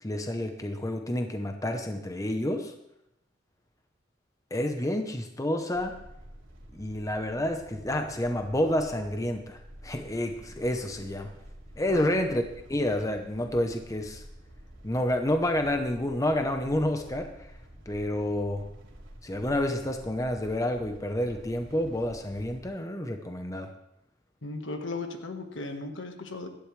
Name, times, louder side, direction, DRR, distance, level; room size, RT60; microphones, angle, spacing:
voice 1, 0.0-2.7 4.5-6.0 6.7-11.3 11.8-12.4 12.7-14.2 14.8-17.3 17.9-18.7 19.2-23.7, left 1 dB, 15° left, 5 dB, 0.8 m, -29 dB
sound 1, 5.7-22.7, equal, 85° right, 2.7 m, -49 dB
voice 2, 11.9-12.2 24.4-26.5, left 3 dB, 70° left, 5 dB, 1.5 m, -36 dB
17.0 x 12.0 x 3.3 m, 0.85 s
head